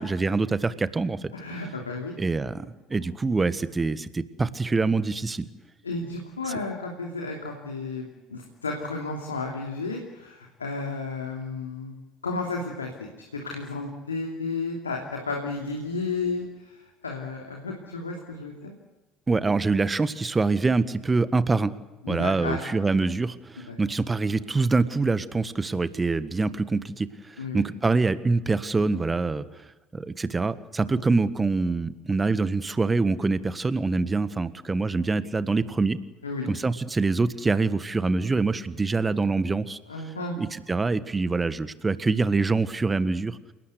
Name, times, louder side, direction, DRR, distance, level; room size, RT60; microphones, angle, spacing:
voice 1, 0.0-1.3 2.2-5.5 19.3-21.7 22.1-29.4 29.9-36.0 36.5-39.8 40.4-43.4, right 3 dB, 20° right, 14 dB, 1.5 m, -25 dB
voice 2, 1.3-2.2 5.8-18.7 22.0-22.6 23.7-23.8 27.4-27.6 36.2-36.5 39.9-40.5, left 3 dB, 85° left, 1 dB, 2.9 m, -33 dB
28.5 x 19.0 x 8.3 m, 1.1 s
figure-of-eight pair, 60°, 0 cm